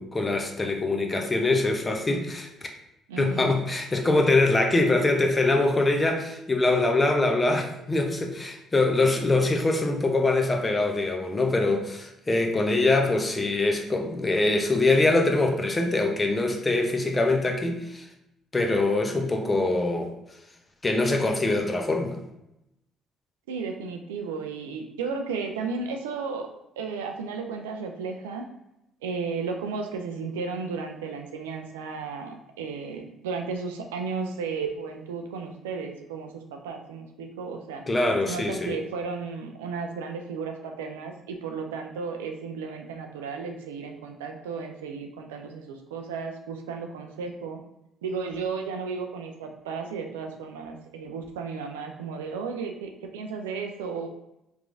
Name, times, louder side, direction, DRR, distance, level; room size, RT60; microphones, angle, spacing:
voice 1, 0.0-2.5 3.2-18.1 18.5-20.1 20.8-22.2 37.9-38.8, left 2 dB, 25° left, 3 dB, 0.7 m, -23 dB
voice 2, 3.1-3.6 23.5-26.5 26.8-28.4 29.0-37.8 38.2-47.6 48.0-54.1, right 5 dB, 85° right, 3 dB, 0.3 m, -34 dB
3.5 x 3.1 x 2.5 m, 0.87 s
hypercardioid pair, 55°, 0 cm